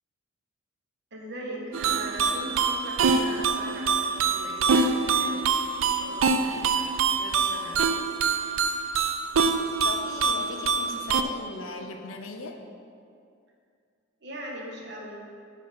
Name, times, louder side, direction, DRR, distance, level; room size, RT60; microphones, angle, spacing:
voice 1, 1.1-5.4 5.7-7.9 14.2-15.4, right 1 dB, 55° right, -2 dB, 1.3 m, -40 dB
sound 1, 1.7-11.2, right 5 dB, 75° right, 0.4 m, -25 dB
voice 2, 9.8-12.6, left 3 dB, 75° left, 4 dB, 0.7 m, -38 dB
11.0 x 4.5 x 4.4 m, 2.4 s
head